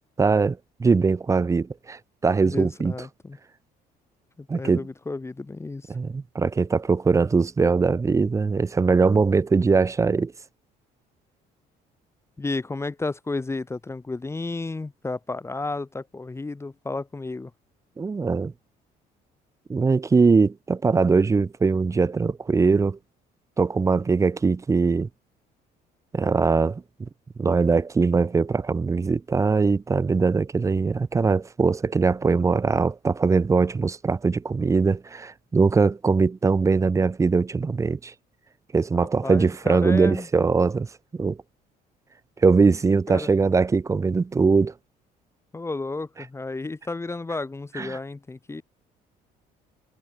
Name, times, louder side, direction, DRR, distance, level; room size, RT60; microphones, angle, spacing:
voice 1, 0.2-2.9 4.5-4.9 5.9-10.3 18.0-18.5 19.7-23.0 23.6-25.1 26.1-27.1 27.4-38.1 38.7-40.9 41.1-41.4 42.4-44.7 47.8-48.0, right 4 dB, 20° right, 0.5 m, -21 dB
voice 2, 2.4-3.4 4.4-5.9 12.4-17.5 38.9-40.3 43.1-43.3 45.5-48.6, left 3 dB, 15° left, 1.1 m, -32 dB
cardioid pair, 110°, 17 cm